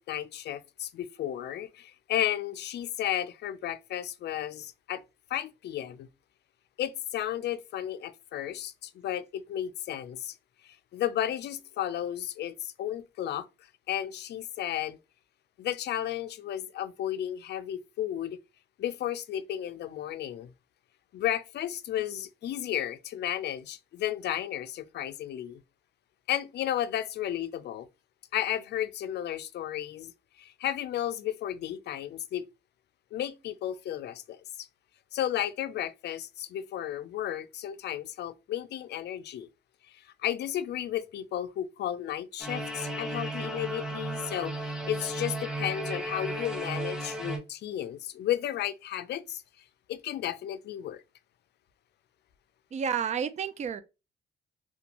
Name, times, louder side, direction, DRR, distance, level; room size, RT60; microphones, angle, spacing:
voice 1, 0.0-5.0 5.3-6.1 6.8-10.4 10.6-13.5 13.9-15.0 15.6-18.4 18.8-20.5 21.1-25.6 26.3-27.9 28.3-30.1 30.4-32.5 33.1-34.7 35.1-39.5 39.9-49.4 49.9-51.0, left 11 dB, 60° left, 0.4 m, -33 dB
sound 1, 42.4-47.4, right 1 dB, 5° right, 0.7 m, -34 dB
voice 2, 52.7-53.8, right 7 dB, 35° right, 0.4 m, -30 dB
2.5 x 2.2 x 2.9 m
cardioid pair, 90°, 20 cm